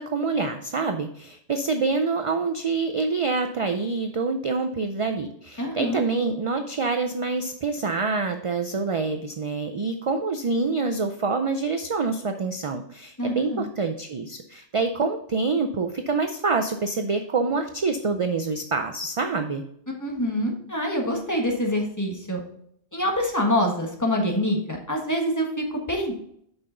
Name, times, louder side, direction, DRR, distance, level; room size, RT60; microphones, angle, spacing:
voice 1, 0.0-19.6, right 4 dB, 45° right, 7 dB, 0.4 m, -26 dB
voice 2, 5.6-6.0 13.2-13.6 20.0-22.4 22.9-26.1, equal, 15° left, 1 dB, 1.4 m, -25 dB
7.9 x 5.8 x 3.8 m, 0.69 s
omnidirectional pair, 1.1 m